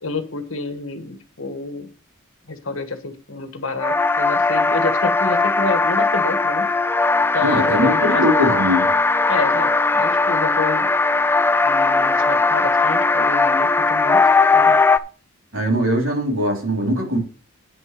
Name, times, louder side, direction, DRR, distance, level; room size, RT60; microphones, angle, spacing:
voice 1, 0.0-1.9 2.5-6.7 7.3-8.7 9.3-10.9 11.6-14.2 14.5-14.8, left 3 dB, 65° left, 8 dB, 1.4 m, -28 dB
sound 1, 3.8-15.0, left 3 dB, 10° left, 0.3 m, -18 dB
voice 2, 7.4-8.9 15.5-17.2, equal, 65° right, 0 dB, 3.5 m, -21 dB
9.3 x 6.2 x 5.2 m, 0.36 s
head